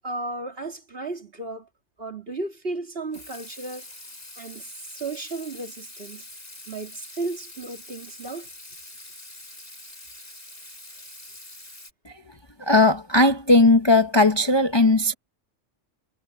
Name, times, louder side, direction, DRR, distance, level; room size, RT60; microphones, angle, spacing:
voice 1, 0.0-1.7 2.0-3.9 4.4-6.3 6.7-8.5 11.0-11.1, right 2 dB, 50° right, 2.7 m, -34 dB
Water tap faucet / Sink (filling or washing), 3.1-11.9, left 1 dB, 50° left, 6.2 m, -44 dB
voice 2, 12.6-15.1, left 2 dB, 25° left, 0.8 m, -18 dB
omnidirectional pair, 1.3 m